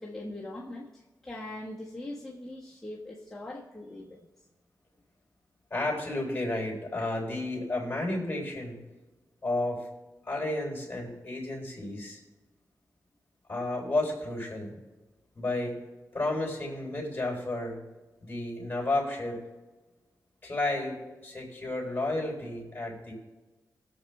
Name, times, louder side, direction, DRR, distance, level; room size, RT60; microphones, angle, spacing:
voice 1, 0.0-4.2, left 1 dB, 5° left, -6 dB, 1.4 m, -41 dB
voice 2, 5.7-8.8 9.4-9.9 10.3-12.2 13.5-14.8 15.4-15.8 16.1-17.8 18.2-19.4 20.4-23.1, left 2 dB, 25° left, -2 dB, 3.5 m, -32 dB
21.0 x 7.5 x 3.4 m, 1.2 s
wide cardioid pair, 140°, 7 cm